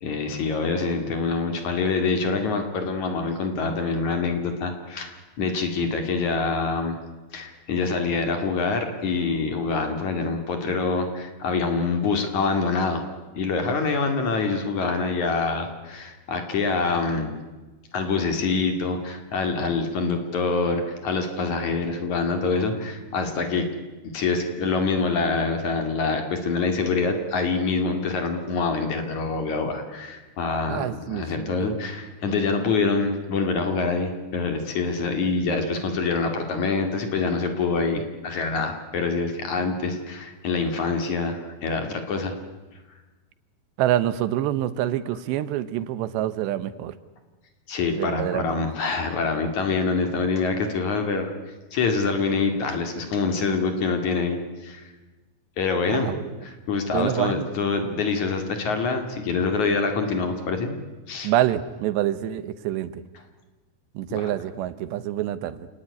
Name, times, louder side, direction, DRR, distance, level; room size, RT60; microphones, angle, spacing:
voice 1, 0.0-7.0 7.3-13.0 13.3-17.3 17.9-23.6 24.1-42.3 47.7-51.3 51.7-54.8 55.6-56.1 56.4-60.7 61.1-61.3 64.1-64.3, left 4 dB, 50° left, 6 dB, 3.2 m, -25 dB
voice 2, 30.7-31.7 43.8-47.0 48.0-48.6 55.9-56.3 56.9-57.5 61.2-63.0 64.0-65.7, right 12 dB, 85° right, 14 dB, 3.2 m, -26 dB
28.5 x 18.5 x 9.7 m, 1.2 s
omnidirectional pair, 4.9 m